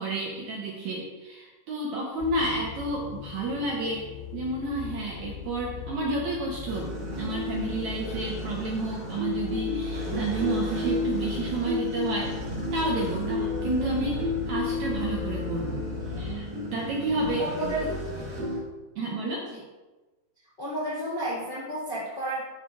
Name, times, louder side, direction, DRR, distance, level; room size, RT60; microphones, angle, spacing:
voice 1, 0.0-4.1 4.3-6.9 7.2-12.3 12.7-15.8 16.1-16.5 16.7-17.5 19.0-19.5, right 2 dB, 75° right, -2 dB, 1.8 m, -30 dB
sound 1, 2.2-16.4, left 3 dB, 85° left, 2.3 m, -38 dB
sound 2, 6.7-18.6, left 2 dB, 35° right, 2.0 m, -32 dB
voice 2, 17.4-17.8 19.5-19.6 20.6-22.4, right 1 dB, 30° left, -11 dB, 1.0 m, -31 dB
12.0 x 4.9 x 2.4 m, 1.2 s
omnidirectional pair, 4.2 m